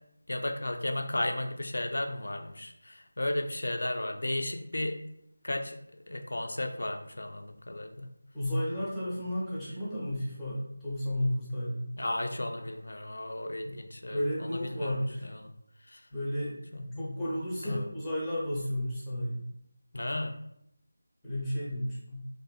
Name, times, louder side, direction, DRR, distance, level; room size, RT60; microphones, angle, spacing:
voice 1, 0.3-5.0 5.4-5.8 6.1-8.1 12.0-15.5 15.9-16.0 16.7-17.4 17.6-17.8 19.9-20.3, left 1 dB, 70° left, 4 dB, 0.3 m, -34 dB
voice 2, 8.3-11.9 14.1-15.3 16.1-16.6 17.0-19.5 21.2-22.3, left 1 dB, 5° left, -9 dB, 0.7 m, -33 dB
2.6 x 2.5 x 2.3 m, 0.76 s
figure-of-eight pair, 165°, 0 cm